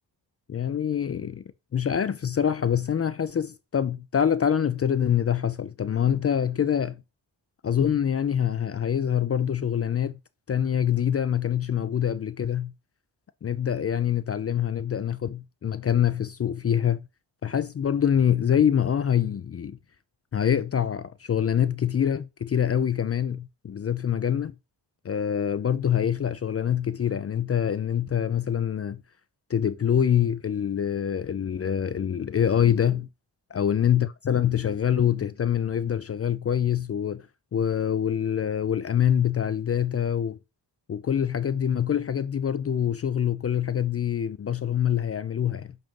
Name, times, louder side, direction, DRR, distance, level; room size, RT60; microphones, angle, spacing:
voice 1, 0.5-1.4 1.7-7.0 7.6-10.2 10.5-12.7 13.4-17.1 17.4-19.8 20.3-24.5 25.0-29.0 29.5-33.1 33.5-37.3 37.5-40.4 40.9-45.7, left 9 dB, 35° left, 0.4 m, -25 dB
7.7 x 2.6 x 5.2 m
wide cardioid pair, 95°, 42 cm